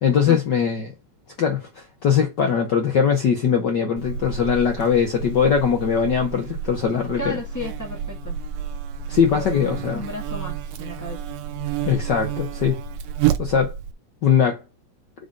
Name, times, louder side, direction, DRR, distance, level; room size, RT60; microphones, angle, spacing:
voice 1, 0.0-0.9 1.4-7.4 9.1-10.0 11.9-12.8 13.4-13.8 14.2-14.6, left 7 dB, 85° left, 0.9 m, -21 dB
Buzz, 4.0-13.9, right 9 dB, 75° right, 1.6 m, -30 dB
voice 2, 7.2-8.4 9.3-11.2, left 1 dB, 15° left, 0.5 m, -34 dB
4.9 x 3.9 x 5.2 m
omnidirectional pair, 3.4 m